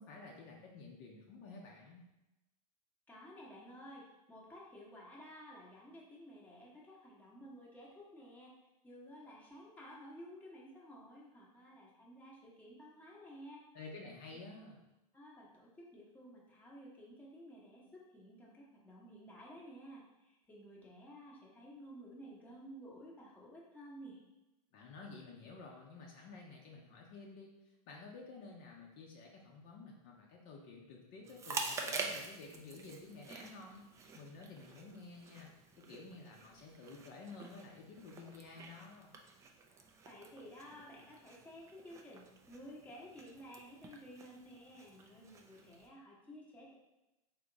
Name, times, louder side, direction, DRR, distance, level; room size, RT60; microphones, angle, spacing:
voice 1, 0.0-2.1 13.7-14.8 24.7-35.5 35.8-39.1, left 3 dB, 45° left, -1 dB, 0.7 m, -52 dB
voice 2, 3.1-8.5 8.8-13.6 15.1-24.2 40.0-46.7, equal, 10° left, -5 dB, 0.9 m, -53 dB
Chewing mastication, 31.2-45.9, right 4 dB, 15° right, 0.4 m, -47 dB
3.6 x 2.8 x 3.9 m, 0.96 s
hypercardioid pair, 130°, 19 cm